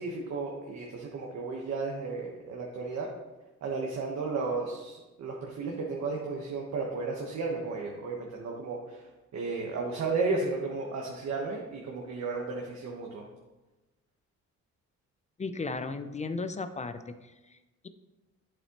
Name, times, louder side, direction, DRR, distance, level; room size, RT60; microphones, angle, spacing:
voice 1, 0.0-3.1 3.6-13.3, right 3 dB, 60° right, -1 dB, 1.2 m, -34 dB
voice 2, 15.4-17.2, left 3 dB, 25° left, 11 dB, 0.5 m, -35 dB
8.1 x 7.4 x 3.0 m, 1.1 s
cardioid pair, 90°, 30 cm